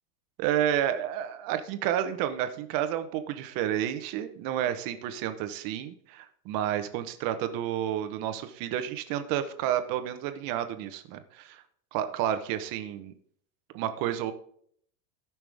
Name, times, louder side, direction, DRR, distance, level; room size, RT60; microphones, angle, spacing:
voice 1, 0.4-11.6 11.9-13.1 13.7-14.3, right 11 dB, 45° right, 9 dB, 1.1 m, -30 dB
17.5 x 6.0 x 3.5 m, 0.63 s
supercardioid pair, 140°, 48 cm